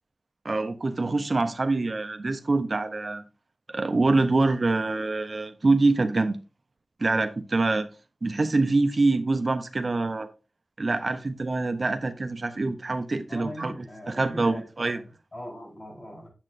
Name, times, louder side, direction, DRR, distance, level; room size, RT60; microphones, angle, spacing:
voice 1, 0.4-3.2 3.7-6.4 7.0-7.9 8.2-10.3 10.8-13.7 14.1-15.0, right 3 dB, 50° right, 0.6 m, -25 dB
voice 2, 13.3-16.3, left 1 dB, 45° left, 3.9 m, -41 dB
8.7 x 7.3 x 2.5 m
wide cardioid pair, 95°, 0 cm